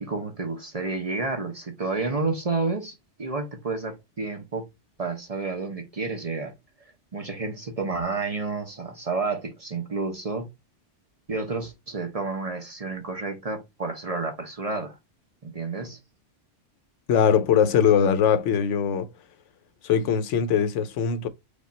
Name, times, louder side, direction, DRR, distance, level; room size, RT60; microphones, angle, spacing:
voice 1, 0.0-4.7 5.0-6.5 7.1-10.5 11.3-15.0 15.4-16.0, right 3 dB, 35° right, 0.7 m, -30 dB
voice 2, 17.1-19.1 19.8-21.3, left 7 dB, 80° left, 0.9 m, -21 dB
5.2 x 2.3 x 4.0 m
omnidirectional pair, 1.2 m